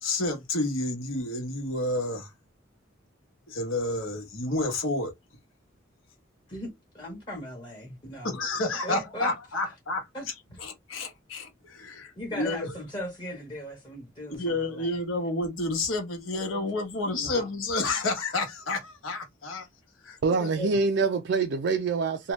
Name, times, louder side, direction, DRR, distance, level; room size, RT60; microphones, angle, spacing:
voice 1, 0.0-2.3 3.5-5.1 8.3-10.1 10.6-12.7 14.4-19.7 20.0-20.7, left 2 dB, 85° left, 1.0 m, -30 dB
voice 2, 6.5-8.4 8.8-9.3 10.1-10.6 12.2-15.0 16.3-16.6 17.0-17.5, equal, 20° left, 0.8 m, -39 dB
voice 3, 20.2-22.3, right 4 dB, 60° right, 0.3 m, -25 dB
2.8 x 2.2 x 3.0 m
head